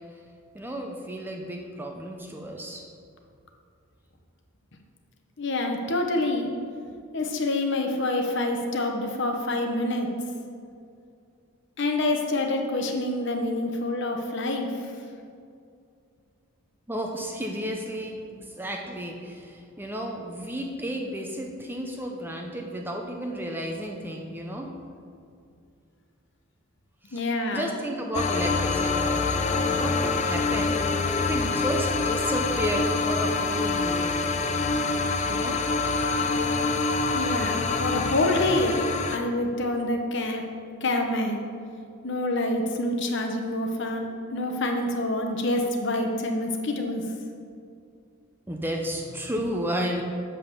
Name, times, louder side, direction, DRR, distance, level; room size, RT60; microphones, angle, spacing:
voice 1, 0.5-2.8 16.9-24.7 27.1-29.1 29.6-30.8 31.2-34.1 35.3-35.6 48.5-50.0, equal, 10° right, 1 dB, 0.6 m, -32 dB
voice 2, 5.4-6.5 7.1-10.1 11.8-14.7 27.1-27.7 37.1-38.8 39.1-40.4 40.8-41.4 42.0-47.0, left 2 dB, 55° left, 3 dB, 0.9 m, -27 dB
sound 1, 28.1-39.2, left 3 dB, 30° left, 0.5 m, -26 dB
7.9 x 5.4 x 6.7 m, 2.4 s
head